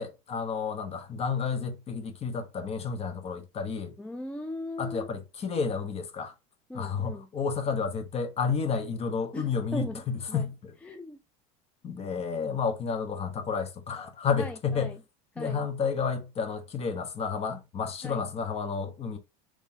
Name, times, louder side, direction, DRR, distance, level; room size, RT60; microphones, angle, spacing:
voice 1, 0.0-3.9 4.8-6.3 6.7-10.7 11.8-14.9 15.4-19.2, left 5 dB, 30° left, 0.9 m, -31 dB
voice 2, 4.0-5.1 6.7-7.3 9.3-10.5 10.8-11.2 14.4-15.0 15.4-15.7 18.0-18.3, left 1 dB, 5° left, 0.3 m, -39 dB
3.7 x 3.1 x 2.7 m
supercardioid pair, 110°, 19 cm